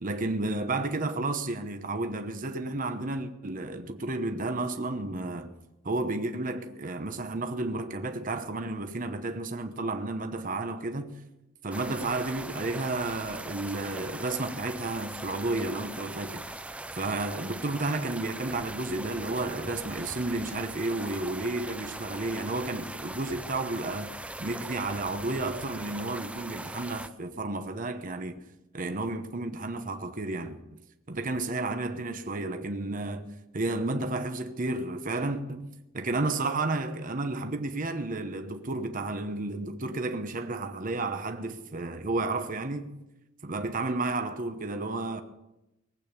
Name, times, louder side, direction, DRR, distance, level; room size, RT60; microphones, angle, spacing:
voice 1, 0.0-5.5 5.8-11.2 11.6-16.6 17.0-28.4 28.7-30.6 31.1-33.3 33.5-42.9 43.4-45.2, right 2 dB, 40° right, 1.0 m, -32 dB
sound 1, 11.7-27.1, right 2 dB, 5° right, 0.5 m, -40 dB
20.0 x 8.7 x 7.1 m
head